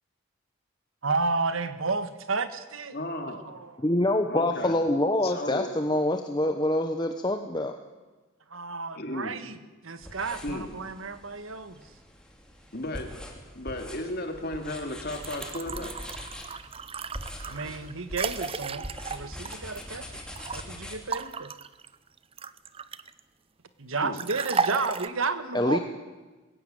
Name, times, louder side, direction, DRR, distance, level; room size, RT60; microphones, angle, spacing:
voice 1, 1.0-3.0 3.3-3.8 8.5-9.6 9.8-11.8 17.4-20.0 20.5-21.5 23.8-25.8, right 3 dB, 75° right, 11 dB, 1.5 m, -32 dB
voice 2, 2.9-3.5 4.3-4.8 5.2-5.8 8.9-9.4 10.4-10.7 12.7-13.1 13.5-15.9 24.0-24.2, left 1 dB, 45° left, 5 dB, 2.7 m, -34 dB
voice 3, 3.8-7.8 25.5-25.8, left 1 dB, 20° left, 6 dB, 1.0 m, -25 dB
sound 1, 10.0-21.0, left 1 dB, 5° left, 2.8 m, -43 dB
sound 2, 15.1-20.6 21.1-23.2 24.2-25.1, right 5 dB, 25° right, 0.6 m, -34 dB
21.0 x 16.5 x 9.2 m, 1.2 s
head